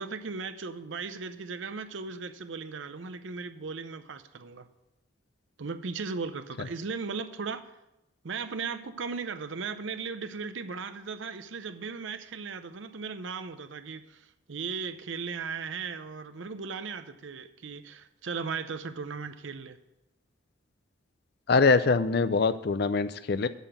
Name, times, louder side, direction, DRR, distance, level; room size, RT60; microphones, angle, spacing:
voice 1, 0.0-4.7 5.6-7.7 8.2-19.8, right 5 dB, 70° right, 0.6 m, -37 dB
voice 2, 21.5-23.5, left 4 dB, 50° left, 0.5 m, -23 dB
8.1 x 6.0 x 8.0 m
head